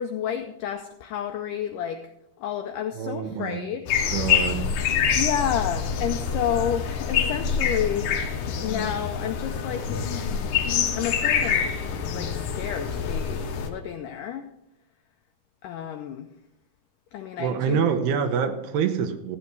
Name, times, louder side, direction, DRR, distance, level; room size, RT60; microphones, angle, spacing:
voice 1, 0.0-2.1 2.4-3.9 5.2-9.9 10.4-10.5 11.0-11.7 12.1-14.5 15.6-16.3 17.1-17.9, left 9 dB, 90° left, 1.8 m, -30 dB
voice 2, 3.0-3.7 4.1-4.7 17.4-19.4, right 7 dB, 85° right, 3.0 m, -26 dB
sound 1, 3.9-13.7, left 7 dB, 65° left, 2.0 m, -26 dB
14.5 x 8.7 x 4.7 m
omnidirectional pair, 4.5 m